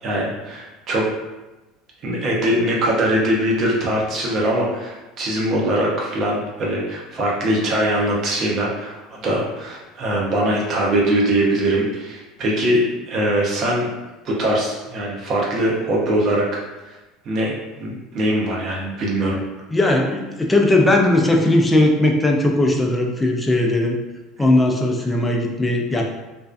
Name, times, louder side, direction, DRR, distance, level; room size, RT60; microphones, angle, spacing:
voice 1, 0.0-1.0 2.0-12.8 13.1-13.9 14.2-17.0 17.2-19.4, right 1 dB, 50° right, -3 dB, 0.7 m, -22 dB
voice 2, 19.7-24.0 24.4-26.0, left 1 dB, 15° left, 1 dB, 0.5 m, -18 dB
2.5 x 2.1 x 2.4 m, 1.1 s
hypercardioid pair, 75°, 0 cm